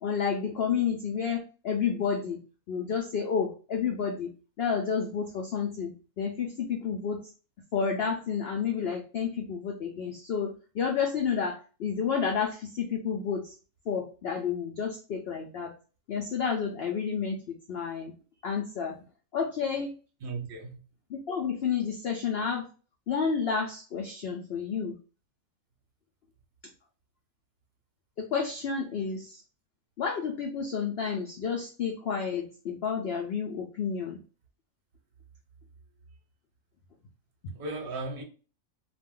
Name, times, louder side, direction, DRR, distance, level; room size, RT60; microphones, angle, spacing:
voice 1, 0.0-2.4 2.7-4.3 4.6-7.3 7.7-13.5 13.9-15.7 16.1-18.1 18.4-19.0 19.3-19.9 21.1-22.7 23.1-25.0 28.2-29.4 30.0-34.2 37.4-37.5, left 6 dB, 85° left, 0.5 m, -30 dB
voice 2, 20.2-20.8 37.5-38.2, right 3 dB, 50° right, 0.7 m, -36 dB
2.4 x 2.1 x 3.5 m
omnidirectional pair, 1.6 m